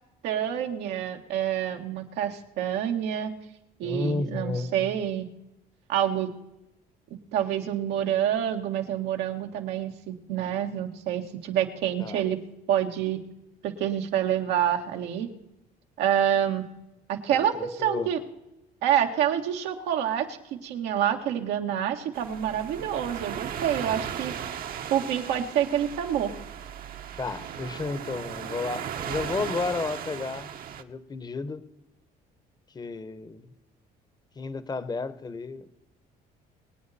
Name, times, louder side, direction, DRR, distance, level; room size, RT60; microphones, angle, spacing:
voice 1, 0.2-3.3 3.8-5.3 5.9-6.3 7.3-12.4 12.7-13.2 13.6-15.3 16.0-16.6 17.1-18.2 18.8-20.4 20.6-24.3 24.9-26.3, right 10 dB, 90° right, 3 dB, 1.7 m, -27 dB
voice 2, 3.8-4.9 12.0-12.2 17.3-18.1 27.2-30.5 30.8-31.6 32.7-33.5 34.4-35.8, left 3 dB, 25° left, 14 dB, 1.0 m, -32 dB
sound 1, 22.1-30.8, right 8 dB, 60° right, 1.1 m, -36 dB
23.5 x 9.1 x 4.2 m, 0.91 s
cardioid pair, 110°, 17 cm